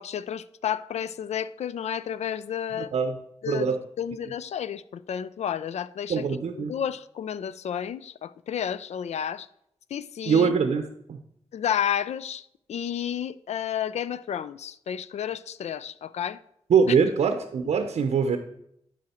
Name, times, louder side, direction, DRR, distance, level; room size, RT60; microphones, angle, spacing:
voice 1, 0.0-2.9 3.4-6.2 6.5-9.5 9.9-10.5 11.5-16.4 16.9-17.0, left 9 dB, 75° left, 0.4 m, -31 dB
voice 2, 2.8-3.2 3.5-3.8 6.1-6.7 10.3-11.2 16.7-18.4, right 6 dB, 85° right, 0.7 m, -23 dB
11.5 x 4.9 x 4.3 m
cardioid pair, 80°, 11 cm